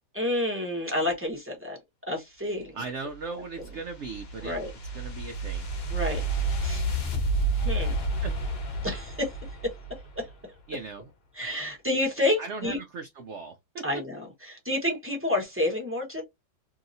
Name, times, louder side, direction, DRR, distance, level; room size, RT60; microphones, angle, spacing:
voice 1, 0.1-1.8 2.1-2.7 4.4-4.7 5.9-6.2 6.6-6.8 7.6-7.9 8.8-9.3 11.4-12.8 13.8-16.2, left 1 dB, 10° right, 0.6 m, -29 dB
voice 2, 2.7-4.6 4.9-5.7 8.2-8.3 10.7-11.1 11.4-11.5 12.4-13.8, right 4 dB, 80° right, 0.6 m, -38 dB
sound 1, 3.1-10.4, right 2 dB, 50° left, 0.8 m, -30 dB
2.9 x 2.7 x 2.6 m
omnidirectional pair, 1.8 m